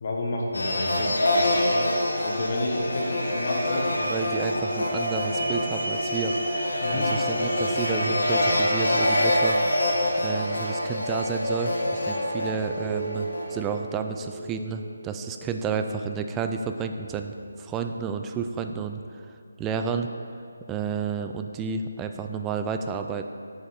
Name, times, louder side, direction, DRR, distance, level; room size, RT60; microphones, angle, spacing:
voice 1, 0.0-1.9 2.2-3.9 6.8-7.1, left 2 dB, 45° left, -1 dB, 1.2 m, -30 dB
sound 1, 0.5-13.8, left 1 dB, 70° left, 1.3 m, -26 dB
sound 2, 3.0-18.6 19.1-19.2, right 3 dB, 45° right, 0.8 m, -39 dB
voice 2, 4.0-9.6 10.2-19.2 19.6-20.1 20.7-23.3, right 6 dB, 15° right, 6 dB, 0.3 m, -31 dB
7.4 x 5.8 x 4.1 m, 2.4 s
figure-of-eight pair, 155°, 0 cm